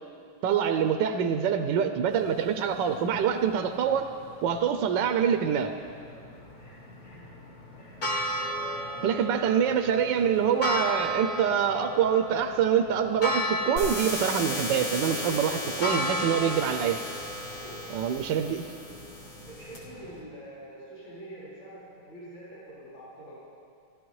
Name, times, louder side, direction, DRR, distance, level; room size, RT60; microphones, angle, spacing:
voice 1, 0.4-4.1 4.4-5.7 9.0-17.0 17.9-18.6, right 8 dB, 75° right, 6 dB, 1.1 m, -25 dB
sound 1, 2.1-20.2, equal, 40° left, 0.7 m, -36 dB
voice 2, 5.5-5.9 6.6-7.4 7.7-8.0 8.4-9.3 15.0-16.9 17.5-18.1 19.4-23.5, equal, 65° left, -10 dB, 4.3 m, -46 dB
sound 2, 13.8-19.8, left 1 dB, 80° left, 3.2 m, -36 dB
16.5 x 13.0 x 3.1 m, 2.5 s
omnidirectional pair, 2.3 m